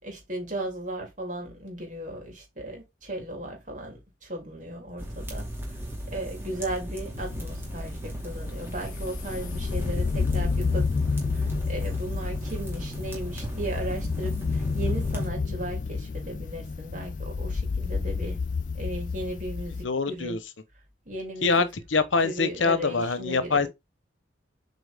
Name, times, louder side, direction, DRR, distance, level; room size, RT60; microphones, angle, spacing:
voice 1, 0.0-5.8 6.1-10.9 11.3-18.4 18.7-20.4 21.0-21.7 22.2-23.7, right 1 dB, 40° right, 3.1 m, -36 dB
sound 1, 5.0-15.3, equal, 15° right, 2.3 m, -36 dB
sound 2, 7.1-19.8, left 4 dB, 45° left, 0.4 m, -30 dB
voice 2, 19.8-20.4 21.4-23.7, left 4 dB, 90° left, 1.0 m, -24 dB
7.8 x 4.5 x 3.5 m
head